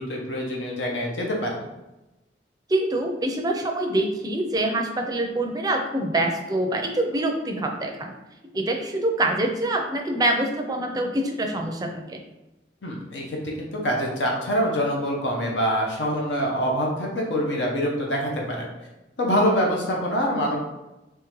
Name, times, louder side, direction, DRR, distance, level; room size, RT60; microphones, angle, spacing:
voice 1, 0.0-1.7 12.8-18.7 19.2-20.6, equal, 80° left, -1 dB, 0.8 m, -25 dB
voice 2, 2.7-8.1 8.5-12.2, right 1 dB, 20° right, 3 dB, 0.4 m, -25 dB
3.6 x 3.1 x 3.1 m, 1.0 s
head